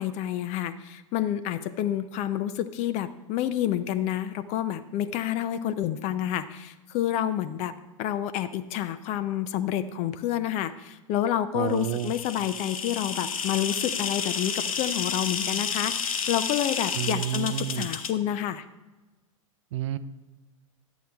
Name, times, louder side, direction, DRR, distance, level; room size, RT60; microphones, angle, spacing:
voice 1, 0.0-7.7 8.0-18.6, left 11 dB, 40° left, 13 dB, 0.6 m, -29 dB
voice 2, 11.5-12.1 17.0-17.9 19.7-20.0, right 12 dB, 65° right, 14 dB, 0.5 m, -30 dB
sound 1, 11.8-18.1, left 6 dB, 85° left, 0.7 m, -31 dB
10.5 x 8.3 x 3.5 m, 1.1 s
hypercardioid pair, 105°, 17 cm